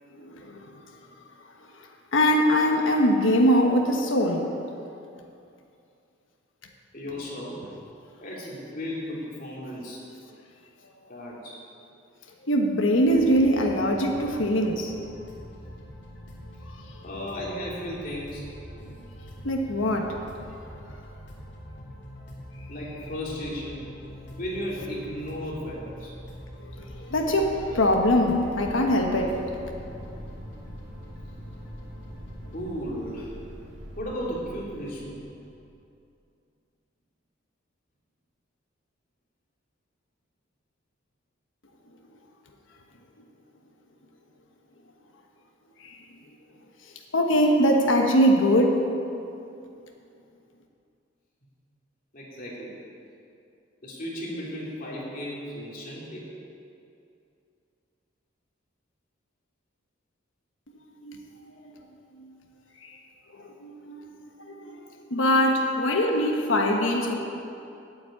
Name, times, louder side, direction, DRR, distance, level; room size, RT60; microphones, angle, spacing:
voice 1, 0.1-0.7 2.1-4.5 12.5-14.9 19.4-20.2 26.6-26.7 27.0-29.6 45.8-46.0 47.1-48.8 61.0-61.2 62.8-62.9 63.3-64.0 64.4-64.8 65.1-67.1, equal, 80° left, 2 dB, 1.3 m, -22 dB
voice 2, 6.9-7.7 8.2-10.0 11.1-11.6 17.0-18.5 22.7-23.8 24.4-26.1 32.5-33.3 34.0-35.2 52.1-52.8 53.8-56.3 65.6-65.9 66.3-66.4, equal, 45° left, -5 dB, 2.9 m, -35 dB
sound 1, 13.0-32.7, equal, 65° left, 2.9 m, -44 dB
sound 2, 26.5-35.8, equal, 55° right, 3.2 m, -44 dB
9.1 x 8.5 x 8.5 m, 2.6 s
head